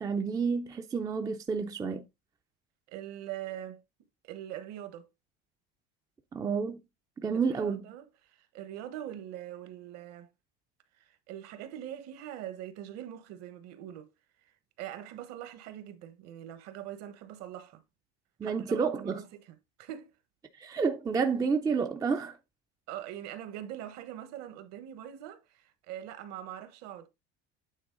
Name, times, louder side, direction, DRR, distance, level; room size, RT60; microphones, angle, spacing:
voice 1, 0.0-2.0 6.3-6.8 7.2-7.8 18.4-19.2 20.6-22.4, right 5 dB, 10° right, 0.4 m, -30 dB
voice 2, 2.9-3.8 4.2-5.1 7.4-10.3 11.0-14.1 14.8-17.8 18.4-19.2 19.8-20.1 22.9-27.1, right 11 dB, 55° right, 1.2 m, -42 dB
8.9 x 3.7 x 3.8 m
cardioid pair, 150°, 31 cm